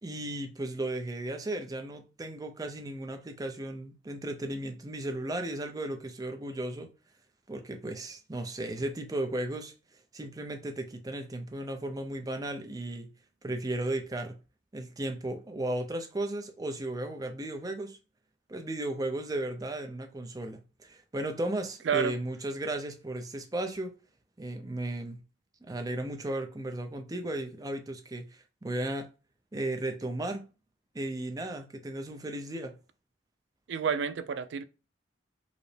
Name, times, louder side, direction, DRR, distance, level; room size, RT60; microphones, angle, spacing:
voice 1, 0.0-6.9 7.5-9.7 10.1-13.1 13.4-14.4 14.7-18.0 18.5-23.9 24.4-25.2 25.6-29.1 29.5-30.5 30.9-32.7, right 1 dB, 20° right, 0.5 m, -35 dB
voice 2, 33.7-34.6, right 7 dB, 85° right, 0.4 m, -29 dB
4.9 x 2.1 x 3.2 m
head